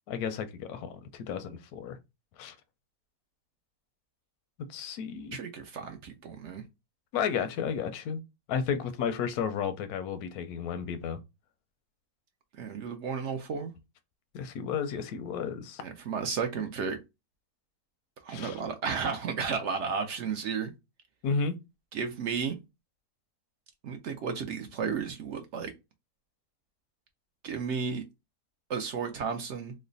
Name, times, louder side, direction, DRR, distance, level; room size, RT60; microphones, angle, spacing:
voice 1, 0.1-2.0 2.4-2.5 4.7-5.4 7.1-8.2 8.5-11.2 14.3-15.8 18.3-18.6 21.2-21.6, left 6 dB, 85° left, 1.1 m, -32 dB
voice 2, 5.3-6.6 12.6-13.7 15.8-17.0 18.2-20.7 21.9-22.5 23.8-25.7 27.4-28.0 28.7-29.7, right 6 dB, 65° right, 0.7 m, -33 dB
3.1 x 2.1 x 3.8 m
omnidirectional pair, 1.5 m